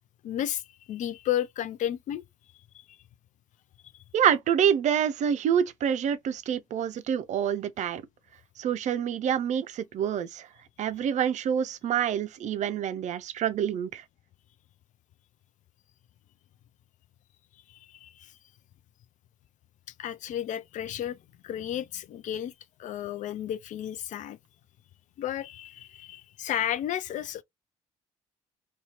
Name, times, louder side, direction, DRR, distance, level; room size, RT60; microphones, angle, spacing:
voice 1, 0.2-0.6 0.9-2.2 2.7-3.0 17.7-18.3 20.0-21.2 21.4-22.5 22.8-24.4 25.2-27.4, left 11 dB, 55° left, 0.4 m, -33 dB
voice 2, 4.1-8.0 8.6-10.5 10.8-14.0, right 9 dB, 55° right, 0.4 m, -27 dB
2.8 x 2.3 x 2.8 m
hypercardioid pair, 50°, 15 cm